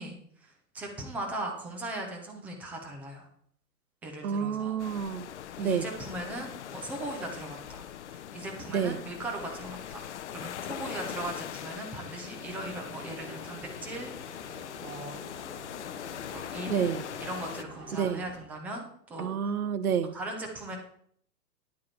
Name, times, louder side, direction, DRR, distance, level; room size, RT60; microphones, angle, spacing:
voice 1, 0.0-3.3 4.0-4.8 5.6-15.2 16.3-16.9 17.2-19.3 20.1-20.8, right 1 dB, 5° right, 1 dB, 0.5 m, -39 dB
voice 2, 4.2-5.3 5.6-5.9 8.7-9.0 16.7-17.0 17.9-18.2 19.2-20.1, right 7 dB, 60° right, 13 dB, 1.0 m, -29 dB
sound 1, 4.8-17.6, left 10 dB, 45° left, 0.6 m, -41 dB
sound 2, 12.3-18.4, right 2 dB, 30° right, 2.7 m, -48 dB
10.0 x 8.5 x 4.4 m, 0.65 s
figure-of-eight pair, 115°, 49 cm